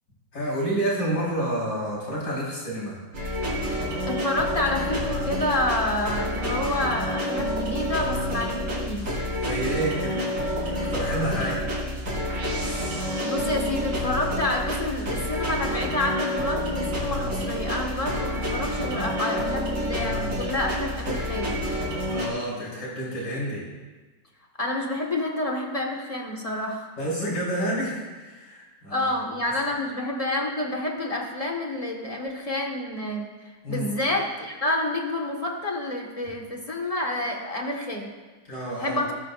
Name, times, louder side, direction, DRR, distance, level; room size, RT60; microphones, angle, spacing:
voice 1, 0.3-3.0 9.4-11.6 22.1-23.6 27.0-29.1 33.6-33.9 38.5-39.0, right 1 dB, 60° left, -5 dB, 4.9 m, -29 dB
sound 1, 3.1-22.3, equal, 75° right, 5.0 m, -28 dB
voice 2, 4.1-9.2 12.9-21.6 24.6-26.9 28.9-38.1 38.8-39.1, left 1 dB, 20° left, 0 dB, 1.6 m, -29 dB
20.5 x 11.0 x 2.6 m, 1.3 s
omnidirectional pair, 2.0 m